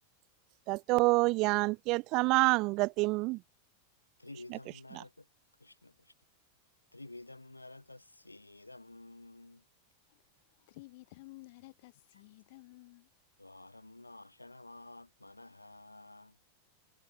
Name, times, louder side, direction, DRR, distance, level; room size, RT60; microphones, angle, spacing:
voice 1, 0.7-3.4 4.5-4.6 5.0-5.1, right 24 dB, 40° right, 0.6 m, -27 dB
voice 2, 4.2-5.3 5.6-6.1 6.9-9.6 13.4-16.4, left 2 dB, 85° left, 3.4 m, -51 dB
voice 3, 10.1-13.1, left 21 dB, 50° left, 5.8 m, -54 dB
figure-of-eight pair, 90°, 0 cm